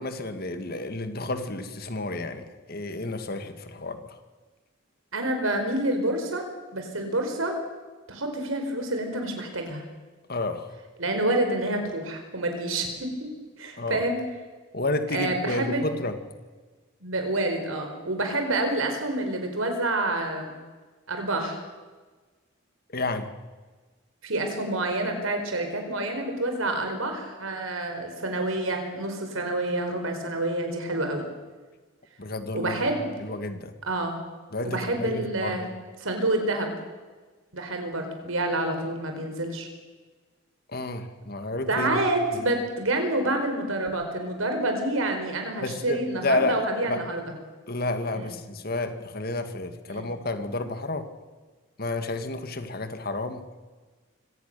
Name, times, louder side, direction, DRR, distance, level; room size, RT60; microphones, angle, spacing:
voice 1, 0.0-4.2 10.3-10.7 13.8-14.0 14.7-16.2 22.9-23.3 32.2-32.8 33.2-33.7 34.5-35.7 40.7-42.0 42.3-42.4 45.6-46.6 46.9-47.0 47.7-51.1 51.8-53.6, left 2 dB, 50° left, 8 dB, 2.0 m, -31 dB
voice 2, 5.1-6.5 6.7-7.6 8.1-9.8 11.0-13.3 13.6-14.2 15.1-15.8 17.0-20.6 21.1-21.6 24.2-31.2 32.5-33.1 33.9-34.2 34.6-35.7 36.0-36.7 37.5-39.7 41.7-47.2 48.1-48.3 49.9-50.1, right 2 dB, 90° right, 5 dB, 4.7 m, -28 dB
24.5 x 18.0 x 6.9 m, 1.3 s
head